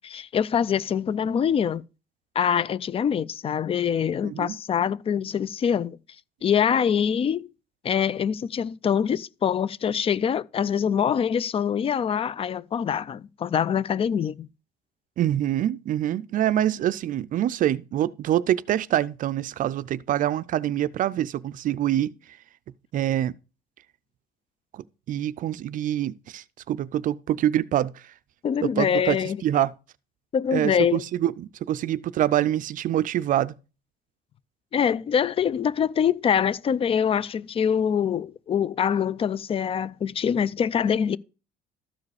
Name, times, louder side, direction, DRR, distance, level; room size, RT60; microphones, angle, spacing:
voice 1, 0.0-1.8 2.4-6.0 6.4-7.5 7.8-14.5 28.4-29.4 30.3-31.0 34.7-41.2, left 8 dB, 35° left, 0.4 m, -24 dB
voice 2, 4.2-4.6 15.2-22.1 22.9-23.3 24.7-28.1 28.6-29.7 30.5-33.5, right 12 dB, 55° right, 0.4 m, -25 dB
13.0 x 4.9 x 4.8 m
cardioid pair, 110°, 17 cm